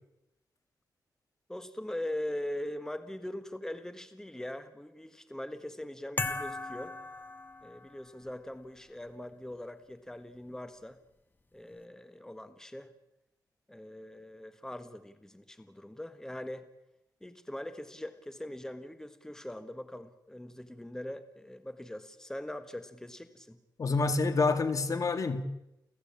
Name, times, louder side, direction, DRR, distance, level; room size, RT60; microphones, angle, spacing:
voice 1, 1.5-7.0 7.6-11.0 11.5-12.9 13.7-16.7 17.2-23.6, left 1 dB, 10° left, 1.5 m, -41 dB
sound 1, 6.2-8.1, left 3 dB, 25° left, 1.5 m, -37 dB
voice 2, 23.8-25.4, left 3 dB, 50° left, 2.2 m, -27 dB
29.5 x 14.5 x 8.8 m
cardioid pair, 95°, 7 cm